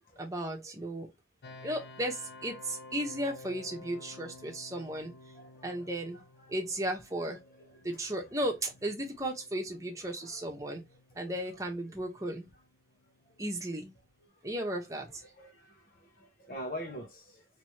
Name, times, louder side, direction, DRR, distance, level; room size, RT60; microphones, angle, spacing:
voice 1, 0.2-1.1 1.6-5.1 5.6-6.2 6.5-7.4 7.8-10.8 11.1-12.5 13.4-13.9 14.4-15.2, right 1 dB, 20° right, 1.0 m, -35 dB
sound 1, 1.4-14.2, left 2 dB, 70° left, 0.6 m, -54 dB
voice 2, 5.3-5.9 7.3-7.4 10.2-10.4 11.2-11.3 15.4-17.4, equal, 50° left, 1.0 m, -44 dB
3.3 x 3.0 x 2.9 m
head